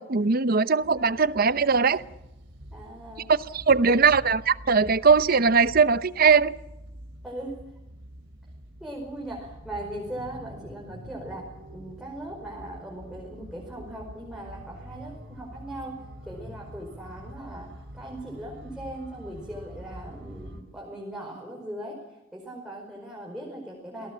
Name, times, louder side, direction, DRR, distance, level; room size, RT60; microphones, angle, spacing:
voice 1, 0.0-2.0 3.3-6.5, right 5 dB, 50° right, 0.8 m, -20 dB
sound 1, 0.8-20.6, equal, 70° right, 3.7 m, -45 dB
voice 2, 2.7-3.3 3.8-4.1 7.2-7.6 8.8-24.1, right 1 dB, 5° right, 5.2 m, -39 dB
28.5 x 19.0 x 7.5 m
head